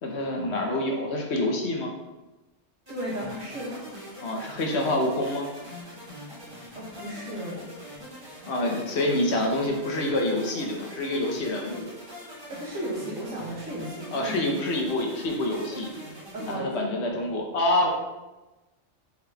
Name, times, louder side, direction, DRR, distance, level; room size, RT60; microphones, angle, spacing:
voice 1, 0.0-1.9 4.2-5.5 8.5-11.8 14.1-15.9 16.5-17.9, left 1 dB, 65° left, 1 dB, 0.9 m, -27 dB
sound 1, 2.9-16.6, equal, 20° right, 1.0 m, -43 dB
voice 2, 2.9-3.9 4.4-4.6 6.7-7.6 12.5-14.5 16.3-17.3, equal, 80° right, -3 dB, 1.5 m, -35 dB
3.6 x 3.5 x 3.3 m, 1.1 s
omnidirectional pair, 1.3 m